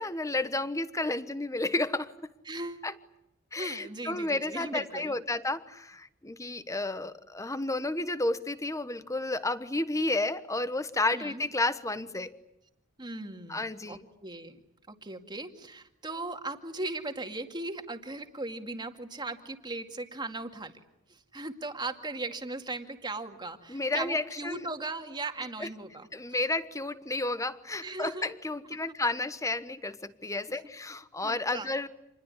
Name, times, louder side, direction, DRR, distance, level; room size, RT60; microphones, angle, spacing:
voice 1, 0.0-2.3 2.8-2.9 3.5-12.3 13.5-14.1 23.7-24.7 25.6-25.7 26.1-31.9, left 2 dB, 15° left, 13 dB, 1.2 m, -31 dB
voice 2, 2.5-2.9 3.6-5.1 11.1-11.4 13.0-14.6 14.9-20.7 21.1-26.1 27.8-28.4 28.7-28.9 31.2-31.7, right 2 dB, 20° right, 5 dB, 2.2 m, -38 dB
28.0 x 21.5 x 9.8 m, 0.84 s
head